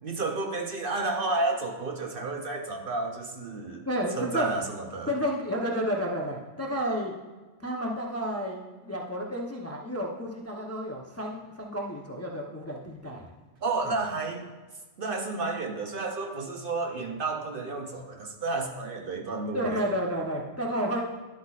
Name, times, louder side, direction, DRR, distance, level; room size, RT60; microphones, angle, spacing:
voice 1, 0.0-5.1 13.6-14.5 15.0-19.8, right 3 dB, 55° right, 3 dB, 0.8 m, -31 dB
voice 2, 3.9-4.5 5.1-7.1 7.6-13.3 19.5-21.2, equal, 15° left, -1 dB, 0.6 m, -31 dB
11.0 x 8.1 x 2.4 m, 1.3 s
omnidirectional pair, 1.2 m